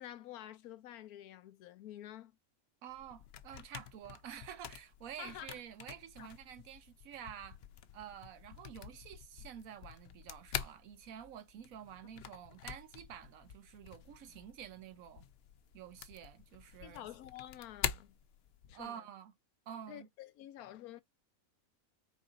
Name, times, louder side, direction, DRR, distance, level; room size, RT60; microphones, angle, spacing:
voice 1, 0.0-2.4 5.2-5.5 6.2-6.3 16.8-18.2 18.7-19.0 19.9-21.0, left 12 dB, 80° left, 1.1 m, -49 dB
voice 2, 2.8-7.6 7.9-15.2 15.7-17.1 18.7-19.3 19.7-20.1, right 9 dB, 70° right, 1.1 m, -49 dB
sound 1, 2.9-18.9, left 9 dB, 65° left, 0.6 m, -47 dB
4.7 x 2.4 x 3.9 m
omnidirectional pair, 1.6 m